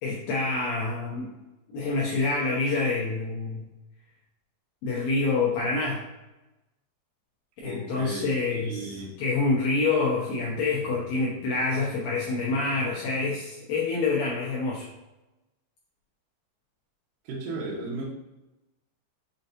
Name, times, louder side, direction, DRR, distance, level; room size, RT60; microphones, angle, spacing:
voice 1, 0.0-1.3 1.7-3.7 4.8-6.0 7.6-8.8 9.2-14.9, left 3 dB, 75° left, -5 dB, 2.2 m, -27 dB
voice 2, 7.6-9.2 17.2-18.0, right 2 dB, 80° right, -4 dB, 2.1 m, -35 dB
6.5 x 2.8 x 2.6 m, 1.0 s
omnidirectional pair, 4.7 m